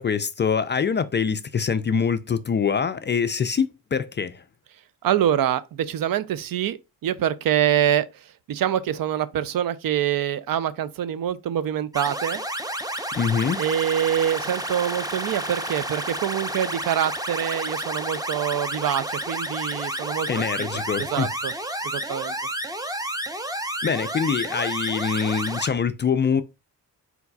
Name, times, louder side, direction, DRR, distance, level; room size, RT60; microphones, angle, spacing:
voice 1, 0.0-4.4 13.2-13.6 20.3-21.3 23.8-26.4, left 6 dB, 30° left, 0.4 m, -24 dB
voice 2, 5.0-8.2 8.5-12.4 13.6-20.3 20.6-21.5 21.8-22.3, right 10 dB, 55° right, 0.5 m, -25 dB
sound 1, 11.9-25.7, right 1 dB, 10° right, 0.7 m, -30 dB
4.5 x 4.0 x 2.3 m
supercardioid pair, 55°, 41 cm